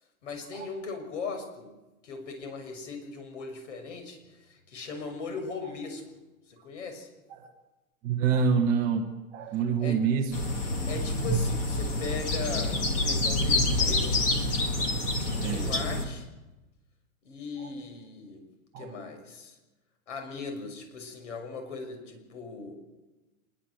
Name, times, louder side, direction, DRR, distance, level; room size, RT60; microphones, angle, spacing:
voice 1, 0.2-1.8 2.0-6.0 6.5-7.1 9.8-10.0 10.9-14.2 14.8-15.0 15.5-16.3 17.2-18.4 18.8-19.6 20.1-22.8, left 4 dB, 55° left, 6 dB, 6.4 m, -39 dB
voice 2, 8.0-10.3 15.3-15.8 17.6-17.7 18.7-18.9, right 6 dB, 20° right, 3 dB, 1.3 m, -27 dB
sound 1, 10.3-16.0, left 1 dB, 15° left, 2.0 m, -27 dB
25.5 x 22.0 x 7.8 m, 1.1 s
hypercardioid pair, 175°, 44 cm